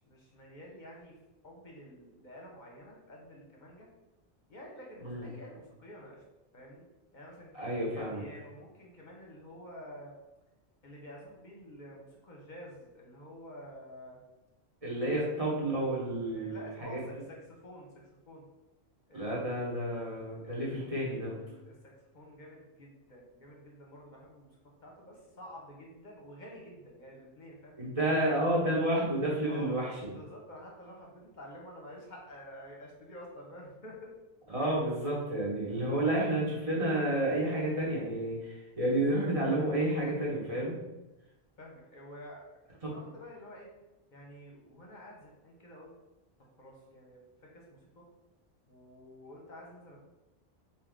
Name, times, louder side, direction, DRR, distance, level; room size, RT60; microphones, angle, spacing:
voice 1, 0.1-1.1 1.4-3.9 4.5-6.2 6.5-6.8 7.1-10.1 10.8-14.2 15.1-15.8 16.3-18.5 19.1-19.6 20.4-20.8 21.3-24.5 24.8-27.7 28.1-28.3 29.4-29.8 30.1-34.1 34.6-34.7 41.6-42.6 42.9-43.7 44.1-45.9 46.6-47.2 47.5-48.0 48.7-50.0, equal, 50° left, -1 dB, 0.8 m, -49 dB
voice 2, 7.5-8.2 14.8-17.0 19.1-21.4 27.8-29.9 34.5-40.7 42.8-42.9, right 1 dB, 35° right, -5 dB, 1.0 m, -30 dB
3.7 x 2.7 x 3.5 m, 1.0 s
omnidirectional pair, 1.0 m